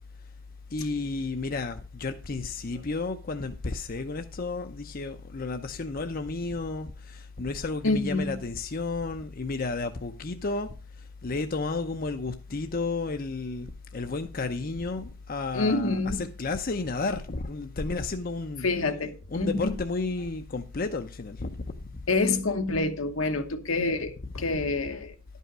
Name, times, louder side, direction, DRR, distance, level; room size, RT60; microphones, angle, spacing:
voice 1, 0.7-10.7 11.2-18.7 19.3-21.7 24.2-24.4, left 3 dB, 45° left, 0.7 m, -32 dB
voice 2, 7.8-8.4 15.5-16.2 18.6-19.7 22.1-25.1, left 3 dB, 75° left, 1.2 m, -27 dB
11.0 x 5.5 x 6.1 m
head